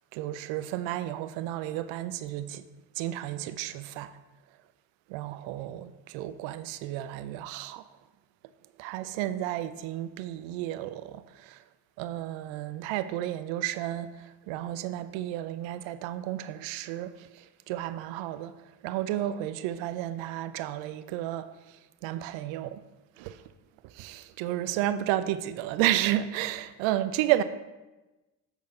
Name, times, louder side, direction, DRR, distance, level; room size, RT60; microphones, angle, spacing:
voice 1, 0.1-2.6 3.0-4.1 5.1-7.8 8.8-11.6 12.0-14.2 14.5-18.5 18.8-21.5 22.0-22.8 23.2-23.4 23.9-27.4, right 13 dB, 65° right, 0.6 m, -32 dB
7.1 x 6.3 x 3.9 m
hypercardioid pair, 45°, 50 cm